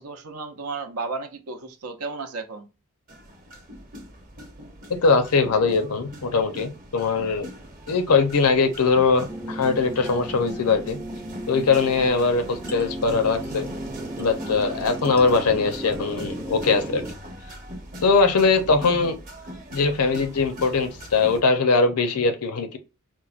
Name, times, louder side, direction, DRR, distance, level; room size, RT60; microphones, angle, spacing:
voice 1, 0.0-2.7, right 4 dB, 75° right, 0.6 m, -33 dB
sound 1, 3.1-21.4, equal, 40° right, 0.9 m, -41 dB
voice 2, 5.0-7.5 7.9-11.0 11.5-13.7 14.2-17.0 18.0-19.2 19.7-22.8, left 4 dB, 80° left, 0.6 m, -21 dB
sound 2, 9.3-17.1, right 1 dB, 10° right, 0.4 m, -35 dB
4.5 x 2.1 x 2.4 m
head